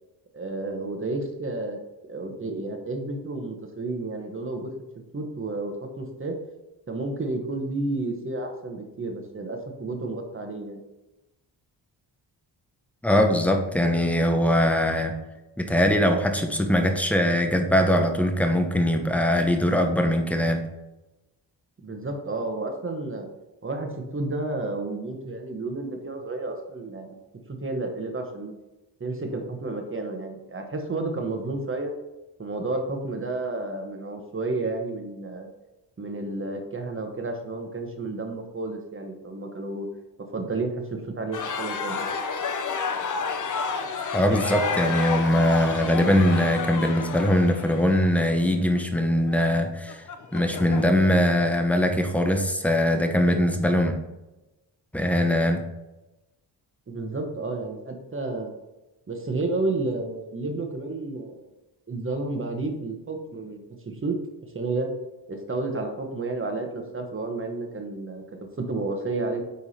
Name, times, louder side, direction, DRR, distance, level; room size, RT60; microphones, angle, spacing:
voice 1, 0.3-4.7 5.1-6.4 6.9-10.8 21.8-23.3 23.6-27.2 27.6-28.5 29.0-31.9 32.4-35.5 36.0-39.9 40.3-42.0 56.9-58.5 59.1-61.5 61.9-64.2 64.4-64.9 65.3-68.2 68.6-69.4, right 2 dB, 30° right, 4 dB, 1.2 m, -31 dB
voice 2, 13.0-15.2 15.6-20.7 44.1-50.0 50.3-54.0 54.9-55.6, equal, 5° left, 4 dB, 0.8 m, -22 dB
sound 1, 41.3-51.2, left 5 dB, 45° left, 0.7 m, -31 dB
9.4 x 3.6 x 4.3 m, 1.0 s
wide cardioid pair, 120°, 44 cm